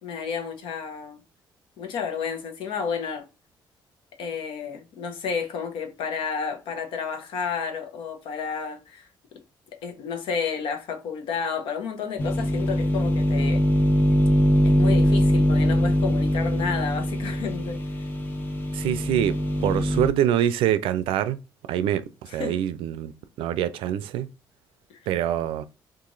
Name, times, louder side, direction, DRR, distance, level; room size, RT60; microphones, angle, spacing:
voice 1, 0.0-1.2 1.8-3.3 4.2-9.4 9.8-13.6 14.6-17.8 22.3-22.6 24.9-25.0, left 6 dB, 80° left, 0.9 m, -31 dB
sound 1, 12.2-20.1, equal, 25° left, 0.8 m, -22 dB
voice 2, 18.7-21.4 21.7-23.1 23.4-24.3 25.1-25.6, right 11 dB, 85° right, 0.4 m, -25 dB
2.9 x 2.5 x 3.8 m
cardioid pair, 105°, 9 cm